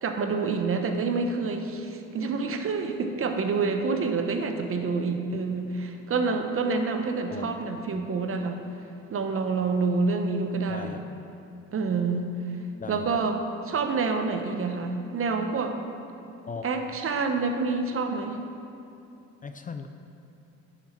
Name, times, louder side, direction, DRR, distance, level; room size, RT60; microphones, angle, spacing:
voice 1, 0.0-8.6 9.1-11.0 11.7-12.3 12.9-15.8 16.6-18.4, right 4 dB, 45° right, 5 dB, 0.8 m, -27 dB
voice 2, 7.3-8.1 10.7-11.0 12.8-13.2 16.5-16.7 19.4-19.9, left 5 dB, 30° left, 7 dB, 0.4 m, -39 dB
10.0 x 6.0 x 4.4 m, 2.7 s
cardioid pair, 90°, 30 cm